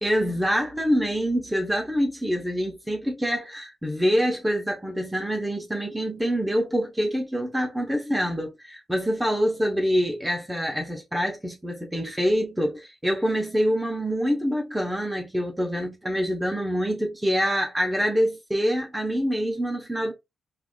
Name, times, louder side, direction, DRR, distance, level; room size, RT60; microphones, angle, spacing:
voice 1, 0.0-20.1, equal, 10° right, 0.8 m, -25 dB
3.5 x 2.5 x 2.3 m
cardioid pair, 65°, 0 cm